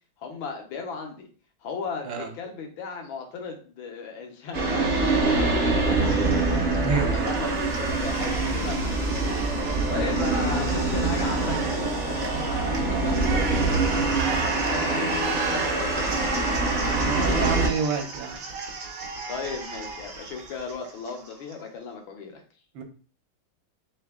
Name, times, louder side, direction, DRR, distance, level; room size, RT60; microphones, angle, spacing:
voice 1, 0.2-1.3 1.6-6.6 6.9-9.5 9.9-16.7 17.2-17.6 19.3-22.4, left 5 dB, 75° left, 3 dB, 1.6 m, -36 dB
sound 1, 4.5-17.7, right 3 dB, 40° right, 0.8 m, -24 dB
Cheering, 6.0-6.9 7.2-21.6, right 4 dB, 55° right, 1.1 m, -36 dB
voice 2, 6.8-7.4 9.9-10.1 17.0-18.4 22.7-22.8, right 6 dB, 70° right, 5 dB, 1.5 m, -29 dB
3.7 x 3.3 x 3.6 m, 0.40 s
omnidirectional pair, 2.2 m